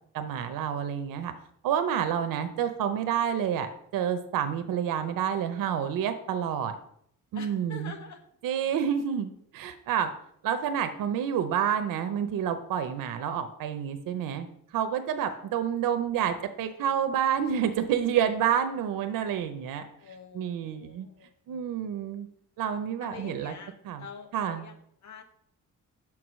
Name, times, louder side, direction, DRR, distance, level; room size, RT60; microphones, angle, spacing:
voice 1, 0.1-1.3 1.6-6.8 7.3-7.9 8.4-10.1 10.4-14.5 14.7-19.9 20.3-21.1 21.5-22.3 22.6-23.5 23.8-24.0 24.3-24.6, right 8 dB, 85° right, 8 dB, 0.7 m, -29 dB
voice 2, 7.3-8.2 15.3-15.4 20.0-21.3 23.0-25.2, left 5 dB, 60° left, 4 dB, 1.1 m, -46 dB
6.0 x 4.7 x 6.1 m, 0.69 s
cardioid pair, 145°, 33 cm